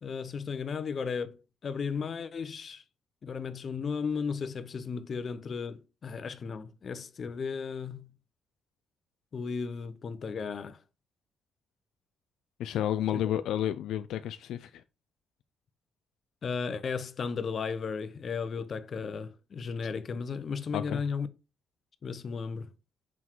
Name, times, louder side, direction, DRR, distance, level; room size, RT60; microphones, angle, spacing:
voice 1, 0.0-2.8 3.2-8.1 9.3-10.8 16.4-21.3 22.0-22.7, left 5 dB, 50° left, 0.8 m, -35 dB
voice 2, 12.6-14.8 20.7-21.0, left 11 dB, 80° left, 0.3 m, -31 dB
6.1 x 3.7 x 4.5 m
cardioid pair, 90°, 0 cm